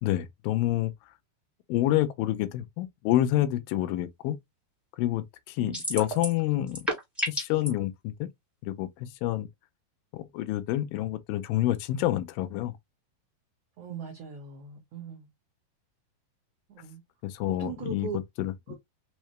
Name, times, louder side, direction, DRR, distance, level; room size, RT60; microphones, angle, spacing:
voice 1, 0.0-0.9 1.7-4.4 5.0-6.9 7.3-8.3 8.6-9.5 10.1-12.7 17.2-18.7, left 14 dB, 85° left, 2.2 m, -28 dB
sound 1, 5.7-6.4 6.7-7.7, equal, ahead, 0.4 m, -30 dB
voice 2, 13.8-15.3 16.7-17.0 17.6-18.2 18.7-18.8, right 7 dB, 85° right, 1.4 m, -39 dB
5.5 x 2.1 x 3.0 m
omnidirectional pair, 4.1 m